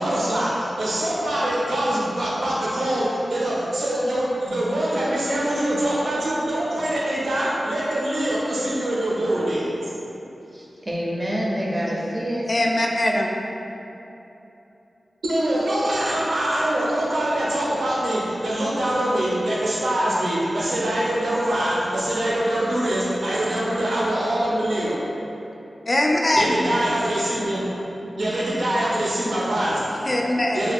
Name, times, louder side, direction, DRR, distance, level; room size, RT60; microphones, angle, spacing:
voice 1, 0.0-9.9 15.2-25.0 26.3-27.7 28.2-29.9 30.5-30.7, right 1 dB, 80° right, -6 dB, 0.6 m, -24 dB
voice 2, 10.5-12.5 12.9-13.0, equal, 40° right, -4 dB, 0.5 m, -27 dB
voice 3, 12.4-13.3 25.9-26.6 30.1-30.7, left 1 dB, 40° left, 0 dB, 0.3 m, -21 dB
2.7 x 2.3 x 3.5 m, 2.9 s
cardioid pair, 55°, 0 cm